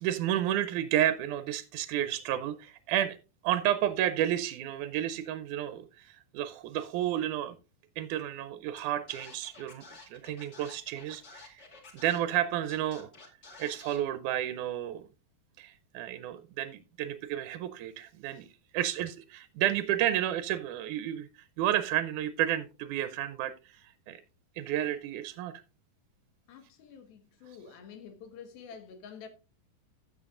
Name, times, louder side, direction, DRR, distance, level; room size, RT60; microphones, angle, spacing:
voice 1, 0.0-3.2 3.4-7.6 8.0-11.6 11.9-13.1 13.6-15.0 15.6-18.5 18.7-21.3 21.6-24.2 24.6-25.5, right 12 dB, 80° right, 1.8 m, -31 dB
Scratching (performance technique), 8.8-8.9 9.1-12.4 12.7-14.0, left 3 dB, 30° left, 2.1 m, -51 dB
voice 2, 26.5-29.3, left 7 dB, 85° left, 3.4 m, -48 dB
15.5 x 6.9 x 2.5 m
omnidirectional pair, 4.2 m